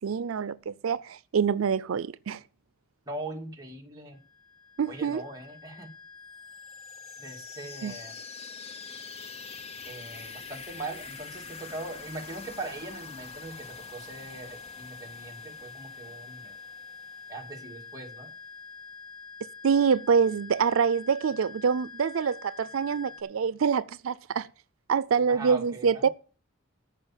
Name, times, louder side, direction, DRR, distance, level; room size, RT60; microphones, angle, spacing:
voice 1, 0.0-2.4 4.8-5.2 7.8-7.9 19.6-24.5 24.9-26.1, right 6 dB, 85° right, 0.4 m, -26 dB
voice 2, 3.1-4.2 4.9-5.9 7.2-8.2 9.8-16.6 17.3-18.3 25.3-26.1, right 2 dB, 20° right, 2.3 m, -41 dB
sound 1, 4.1-23.2, left 5 dB, 15° left, 2.3 m, -46 dB
sound 2, 6.3-18.0, left 5 dB, 30° left, 0.8 m, -47 dB
14.0 x 5.6 x 7.3 m
head